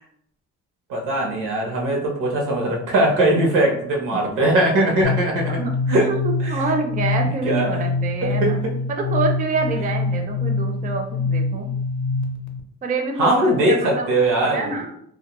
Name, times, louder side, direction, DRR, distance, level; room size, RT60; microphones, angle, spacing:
voice 1, 0.9-5.6 5.9-6.1 6.4-6.5 7.4-7.8 8.2-8.7 13.2-14.7, right 1 dB, 85° right, 1 dB, 0.8 m, -20 dB
sound 1, 5.0-12.6, left 3 dB, 65° left, 0.5 m, -25 dB
voice 2, 5.6-8.6 8.9-11.7 12.8-14.1 14.4-14.9, right 4 dB, 30° right, 3 dB, 0.4 m, -27 dB
2.2 x 2.1 x 2.9 m, 0.70 s
cardioid pair, 90°, 30 cm